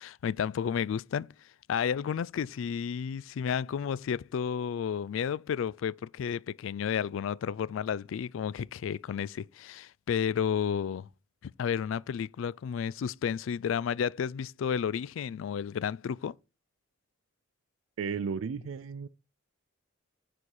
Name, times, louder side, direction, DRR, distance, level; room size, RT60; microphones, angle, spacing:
voice 1, 0.0-1.3 1.7-11.1 11.4-16.4, left 7 dB, 70° left, 0.3 m, -32 dB
voice 2, 18.0-19.1, right 6 dB, 75° right, 0.4 m, -34 dB
9.7 x 4.2 x 4.7 m
head